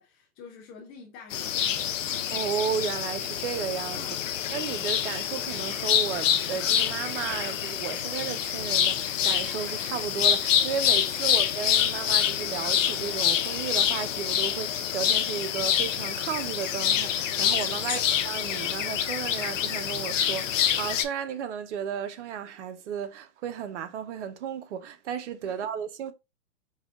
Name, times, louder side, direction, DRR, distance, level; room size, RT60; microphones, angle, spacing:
voice 1, 0.0-1.9 3.9-4.3 11.2-11.4 17.8-18.1 25.4-25.7, left 5 dB, 20° left, 0.5 m, -48 dB
sound 1, 1.3-21.0, left 9 dB, 60° left, 0.7 m, -27 dB
voice 2, 2.3-4.0 4.5-26.1, right 7 dB, 55° right, 0.7 m, -34 dB
4.3 x 2.3 x 3.5 m
hypercardioid pair, 135°, 43 cm